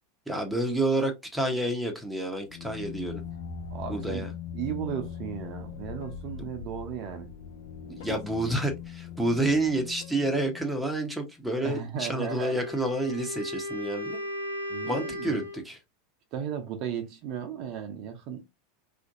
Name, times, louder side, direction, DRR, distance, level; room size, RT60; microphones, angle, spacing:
voice 1, 0.3-3.1 3.9-4.3 6.4-6.5 8.0-14.2 14.8-15.8, right 1 dB, 5° right, 0.7 m, -29 dB
sound 1, 2.4-11.0, left 7 dB, 65° left, 0.5 m, -41 dB
voice 2, 3.7-7.3 8.0-8.2 11.5-12.6 14.7-15.4 16.3-18.5, right 8 dB, 45° right, 0.6 m, -35 dB
Wind instrument woodwind instrument, 12.1-15.7, left 1 dB, 85° right, 0.7 m, -36 dB
2.5 x 2.2 x 2.5 m
figure-of-eight pair, 85°, 0 cm